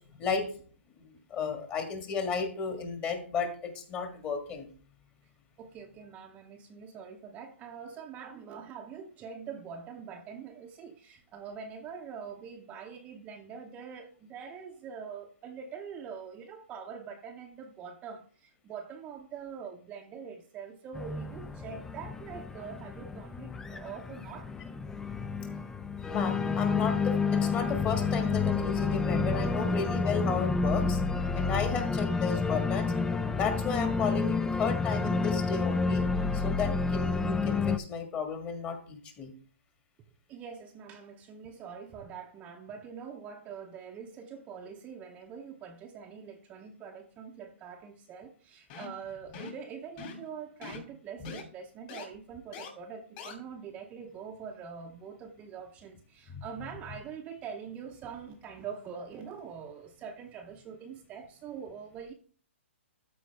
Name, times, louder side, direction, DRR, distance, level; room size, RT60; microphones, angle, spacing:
voice 1, 0.1-0.4 1.0-4.7 26.1-31.0 31.3-32.9 33.3-36.1 36.3-39.3 50.7-50.8 51.2-51.3 56.3-56.4, left 5 dB, 20° left, 1.6 m, -33 dB
voice 2, 5.6-24.5 40.3-62.1, right 6 dB, 20° right, 0.7 m, -44 dB
Organ, 20.9-37.8, left 4 dB, 5° left, 0.3 m, -30 dB
sound 1, 48.7-49.0 49.3-49.6 50.0-50.3 50.6-50.8 51.2-51.4 51.9-52.0 52.5-52.7 53.2-53.3, left 5 dB, 40° left, 2.6 m, -42 dB
13.0 x 4.6 x 3.3 m
hypercardioid pair, 145°, 7 cm